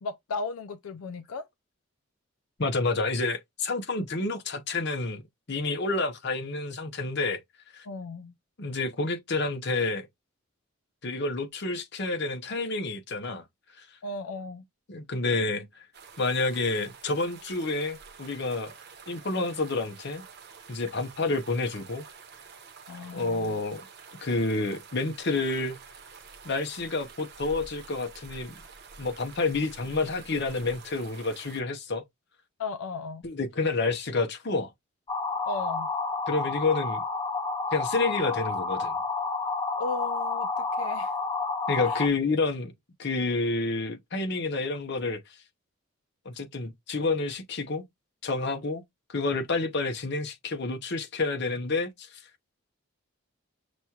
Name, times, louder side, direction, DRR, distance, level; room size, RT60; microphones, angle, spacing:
voice 1, 0.0-1.4 7.9-8.3 14.0-14.6 22.9-23.6 32.6-33.2 35.5-35.9 39.8-41.1 41.8-42.0, left 3 dB, 80° left, 0.4 m, -36 dB
voice 2, 2.6-5.2 5.5-7.4 7.7-7.8 8.6-10.1 11.0-13.4 14.9-15.8 16.2-18.7 19.1-20.2 20.7-22.0 23.1-23.9 24.2-25.8 26.4-28.6 29.0-32.0 33.2-34.7 36.3-37.0 37.7-39.0 41.7-42.7 43.0-45.2 46.2-47.8 48.2-48.8 49.1-52.2, left 3 dB, 50° left, 0.7 m, -29 dB
sound 1, 15.9-31.6, right 5 dB, 50° right, 0.8 m, -48 dB
sound 2, 35.1-42.1, left 3 dB, 20° left, 0.4 m, -30 dB
6.1 x 2.3 x 2.8 m
head